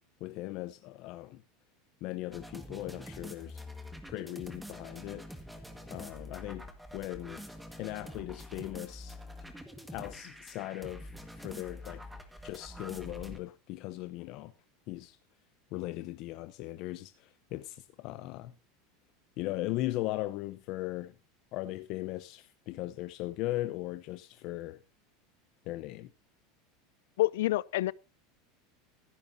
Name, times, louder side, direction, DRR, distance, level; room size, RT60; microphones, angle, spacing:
voice 1, 0.2-1.4 2.0-3.6 4.0-5.3 5.9-7.4 7.8-9.2 9.9-11.1 11.4-12.0 12.4-14.5 14.9-15.2 15.7-18.5 19.4-21.1 21.5-24.8 25.7-26.1, left 16 dB, 40° left, 0.8 m, -38 dB
sound 1, 2.3-13.4, left 1 dB, ahead, 1.6 m, -46 dB
voice 2, 27.2-27.9, left 17 dB, 75° left, 0.6 m, -27 dB
16.0 x 14.5 x 2.7 m
supercardioid pair, 170°, 0 cm